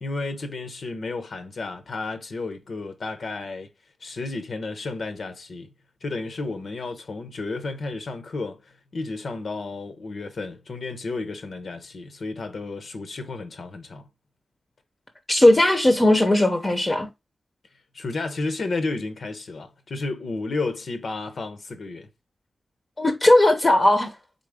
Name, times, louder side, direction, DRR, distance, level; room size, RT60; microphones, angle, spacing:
voice 1, 0.0-3.7 4.0-5.7 6.0-14.1 17.9-22.1, left 3 dB, 60° left, 0.7 m, -32 dB
voice 2, 15.3-17.1 23.0-24.1, left 1 dB, 20° left, 0.7 m, -17 dB
4.0 x 3.8 x 3.4 m
wide cardioid pair, 170°, 0 cm